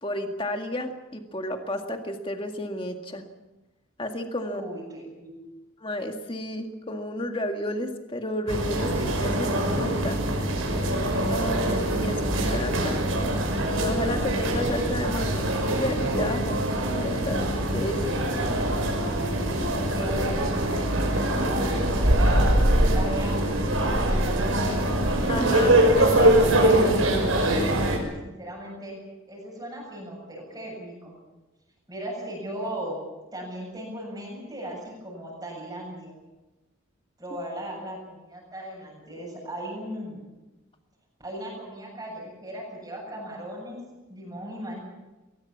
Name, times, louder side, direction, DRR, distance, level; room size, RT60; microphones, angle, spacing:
voice 1, 0.0-3.3 4.0-4.6 5.8-10.2 10.6-10.7 11.3-13.0 13.7-18.2 25.3-27.0, left 1 dB, 25° left, 5 dB, 1.9 m, -32 dB
voice 2, 4.4-5.3 18.0-19.0 19.9-20.4 21.1-24.9 28.0-29.0 29.3-31.1 31.9-33.0 33.3-36.1 37.2-40.3 41.2-43.8 44.1-44.8, equal, 20° right, -3 dB, 7.5 m, -37 dB
sound 1, 8.5-28.0, right 1 dB, 75° right, 5.7 m, -23 dB
21.5 x 19.5 x 7.4 m, 1.1 s
head